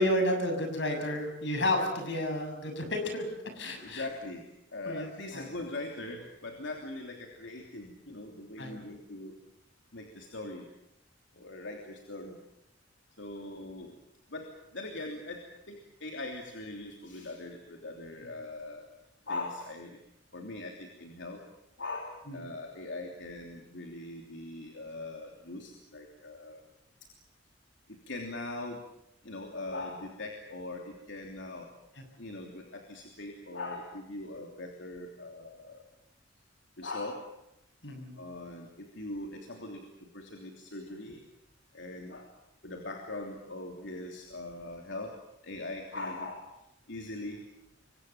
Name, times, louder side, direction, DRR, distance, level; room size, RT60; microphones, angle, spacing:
voice 1, 0.0-3.3 3.5-4.1 4.8-5.5 8.6-8.7 22.3-22.5 31.9-32.0 37.8-38.1, left 1 dB, 70° left, 5 dB, 6.8 m, -31 dB
voice 2, 3.8-4.4 4.7-9.4 9.9-10.6 11.4-12.4 13.2-14.0 14.3-18.9 19.3-20.0 20.3-21.4 21.8-26.6 27.9-28.8 29.2-31.7 32.2-35.8 36.8-37.2 38.2-41.2 41.7-42.3 42.6-45.1 45.4-46.5 46.9-47.4, left 2 dB, 85° left, 2 dB, 3.2 m, -41 dB
26.5 x 24.0 x 7.2 m, 0.83 s
head